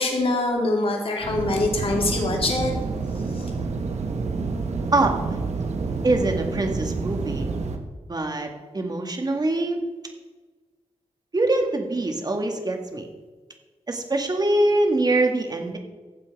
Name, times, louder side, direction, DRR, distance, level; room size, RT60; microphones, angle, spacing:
voice 1, 0.0-2.7 3.4-3.5, left 2 dB, 55° left, 1 dB, 2.5 m, -24 dB
sound 1, 1.2-7.8, right 4 dB, 90° right, 1.2 m, -28 dB
voice 2, 6.0-7.5 8.1-9.8 11.3-13.0 13.9-15.8, right 2 dB, 35° right, 4 dB, 1.9 m, -23 dB
15.0 x 7.7 x 4.8 m, 1.3 s
wide cardioid pair, 95°, 11 cm